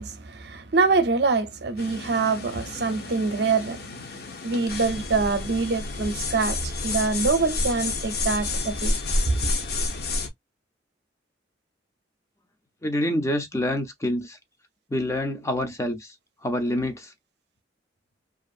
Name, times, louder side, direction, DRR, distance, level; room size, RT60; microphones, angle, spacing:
voice 1, 0.0-3.8 4.4-8.9, right 4 dB, 60° right, 0.6 m, -25 dB
sound 1, 1.8-10.3, left 2 dB, 55° left, 0.6 m, -30 dB
voice 2, 12.8-14.4 14.9-16.1 16.4-17.1, left 1 dB, 15° left, 0.4 m, -27 dB
2.5 x 2.4 x 2.4 m
head